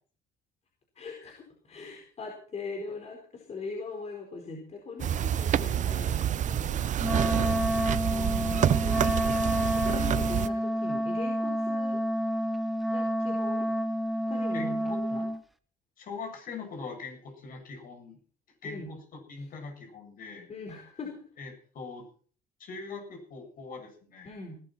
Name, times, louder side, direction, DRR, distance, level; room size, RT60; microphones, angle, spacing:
voice 1, 0.9-7.8 8.1-9.0 9.5-12.0 12.9-13.7 14.3-15.3 18.6-18.9 20.5-21.3 24.2-24.6, left 3 dB, 40° left, 1 dB, 4.5 m, -41 dB
sound 1, 5.0-10.5, right 10 dB, 45° right, 0.8 m, -27 dB
Wind instrument woodwind instrument, 7.0-15.4, equal, ahead, 1.0 m, -29 dB
voice 2, 14.5-15.0 16.0-18.2 18.6-20.5 21.4-22.1 22.6-24.4, left 4 dB, 55° left, 3 dB, 7.7 m, -42 dB
19.0 x 12.5 x 4.4 m, 0.43 s
cardioid pair, 110°, 17 cm